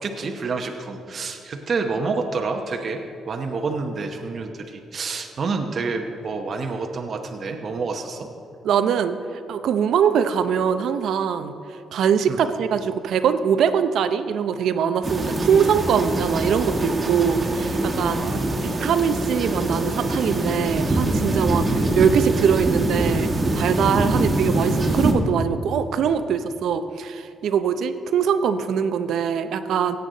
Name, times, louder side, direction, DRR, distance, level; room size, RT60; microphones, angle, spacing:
voice 1, 0.0-8.3 12.3-12.5 18.1-18.8 24.1-24.4, right 4 dB, 50° right, 3 dB, 0.9 m, -28 dB
voice 2, 8.6-9.2 9.5-11.5 11.9-18.2 18.6-30.0, right 7 dB, 75° right, 10 dB, 0.6 m, -22 dB
sound 1, 15.0-25.1, right 1 dB, 30° right, 1.7 m, -24 dB
17.0 x 8.1 x 4.0 m, 2.5 s
cardioid pair, 90°, 0 cm